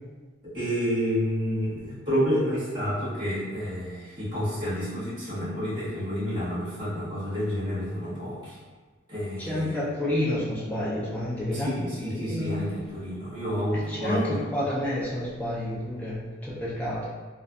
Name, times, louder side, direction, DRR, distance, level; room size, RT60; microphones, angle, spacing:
voice 1, 0.4-8.6 9.1-9.7 11.5-14.7, equal, 20° right, -12 dB, 1.2 m, -29 dB
voice 2, 9.4-11.7 12.0-12.6 13.9-17.1, left 1 dB, 5° left, -8 dB, 0.6 m, -29 dB
2.5 x 2.3 x 2.5 m, 1.3 s
head